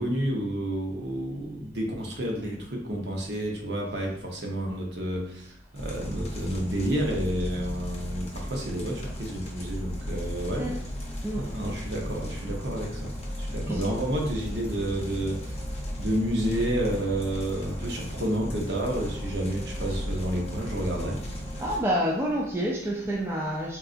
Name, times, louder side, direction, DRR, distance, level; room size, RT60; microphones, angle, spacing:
voice 1, 0.0-10.7 11.4-13.1 13.4-15.6 16.0-21.2, right 1 dB, 65° right, 0.8 m, -30 dB
sound 1, 5.8-21.8, equal, 35° left, 0.7 m, -35 dB
voice 2, 11.2-11.6 13.7-13.8 21.6-23.8, equal, 15° right, 0.3 m, -28 dB
3.7 x 2.3 x 2.4 m
head